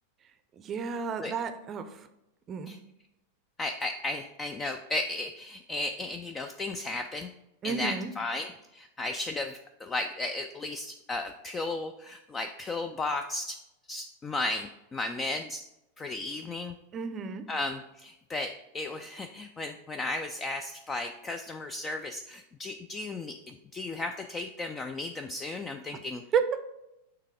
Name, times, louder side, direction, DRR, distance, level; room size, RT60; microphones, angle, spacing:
voice 1, 0.6-2.1 2.5-2.7 7.6-8.1 16.9-17.4 26.3-26.5, right 6 dB, 25° right, 10 dB, 0.6 m, -31 dB
voice 2, 3.6-7.3 7.6-13.6 13.9-15.6 16.0-16.8 17.5-26.2, left 2 dB, 20° left, 6 dB, 0.3 m, -35 dB
6.6 x 3.3 x 4.8 m, 0.89 s
figure-of-eight pair, 90°, 0 cm